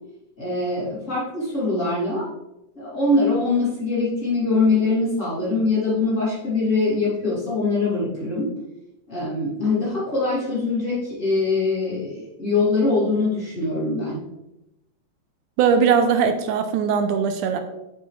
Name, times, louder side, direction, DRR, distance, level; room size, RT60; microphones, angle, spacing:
voice 1, 0.4-2.3 2.8-8.5 9.1-14.2, left 3 dB, 25° left, -9 dB, 3.0 m, -23 dB
voice 2, 15.6-17.6, right 6 dB, 85° right, 8 dB, 2.1 m, -20 dB
7.2 x 7.1 x 3.3 m, 0.92 s
omnidirectional pair, 3.7 m